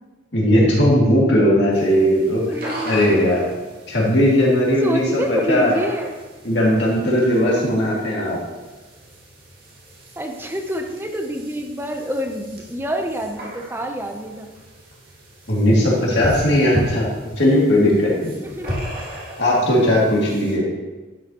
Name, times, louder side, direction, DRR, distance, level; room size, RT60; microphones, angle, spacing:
voice 1, 0.3-2.4 2.8-3.4 3.9-5.0 5.3-5.7 6.4-8.4 15.5-17.1 17.4-18.3 19.4-20.6, equal, 60° left, -5 dB, 2.4 m, -17 dB
sound 1, 1.7-20.5, equal, 45° right, 2.5 m, -35 dB
voice 2, 2.5-3.0 4.8-6.1 10.2-14.5 18.4-18.9, right 1 dB, 10° right, 4 dB, 0.7 m, -27 dB
11.0 x 8.0 x 3.0 m, 1.2 s
head